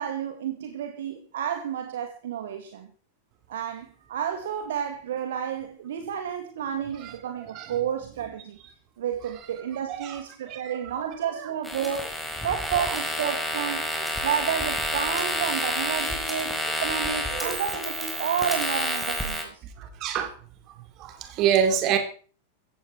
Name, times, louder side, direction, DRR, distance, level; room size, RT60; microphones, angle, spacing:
voice 1, 0.0-2.9 3.5-8.6 9.0-13.8 14.2-19.6, right 8 dB, 60° right, 2.0 m, -31 dB
voice 2, 9.9-11.1 11.4-11.5 12.7-12.9 13.2-13.3 17.3-17.6 19.8-20.3 21.0-22.0, right 8 dB, 35° right, 3.8 m, -27 dB
sound 1, 11.6-19.4, equal, ahead, 4.6 m, -29 dB
16.0 x 15.0 x 4.6 m
figure-of-eight pair, 90°, 0 cm